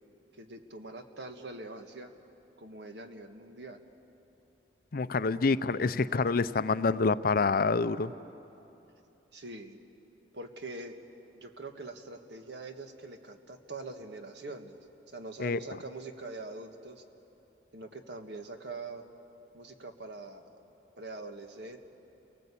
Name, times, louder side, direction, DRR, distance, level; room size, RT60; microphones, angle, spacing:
voice 1, 0.3-2.1 2.6-3.8 9.3-9.8 10.3-11.0 11.3-14.8 15.1-17.0 17.7-19.0 19.5-20.6 20.9-21.8, right 2 dB, 70° right, 6 dB, 1.7 m, -43 dB
voice 2, 4.9-8.1 15.4-15.6, left 4 dB, 55° left, 14 dB, 0.6 m, -27 dB
29.0 x 19.0 x 8.5 m, 3.0 s
head